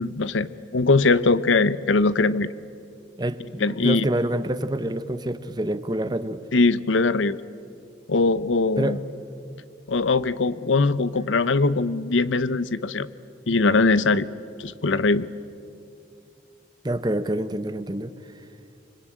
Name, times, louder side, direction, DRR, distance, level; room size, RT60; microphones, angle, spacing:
voice 1, 0.0-2.5 3.6-4.1 6.5-7.4 8.1-9.0 9.9-13.1 13.5-14.3 14.6-15.3, left 3 dB, 85° left, 16 dB, 0.8 m, -21 dB
voice 2, 3.2-6.4 8.8-9.0 16.8-18.1, right 1 dB, 20° right, 12 dB, 0.9 m, -27 dB
26.0 x 25.0 x 8.8 m, 2.5 s
head